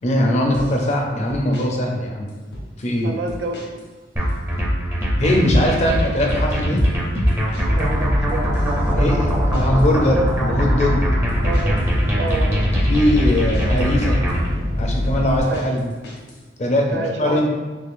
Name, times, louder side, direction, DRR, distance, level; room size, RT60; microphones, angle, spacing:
voice 1, 0.0-2.3 2.8-3.1 5.2-6.8 8.9-11.0 12.7-14.2 14.7-15.9 16.6-17.5, left 1 dB, 40° left, 1 dB, 0.5 m, -21 dB
sound 1, 0.5-1.0 1.3-1.7 2.3-2.9 3.3-3.9 4.2-4.7 5.3-5.9 6.1-9.9 10.3-10.7 11.3-13.9 14.3-16.4, equal, 70° left, 0.7 m, -37 dB
voice 2, 3.0-3.5 7.7-9.1 11.4-11.8 12.1-12.7 15.4-15.6 16.9-17.5, right 3 dB, 75° right, 2 dB, 0.4 m, -29 dB
sound 2, 4.2-14.5, equal, 10° right, 0.5 m, -21 dB
sound 3, 7.7-15.4, left 1 dB, 90° right, 1.3 m, -24 dB
3.5 x 3.0 x 2.5 m, 1.3 s
head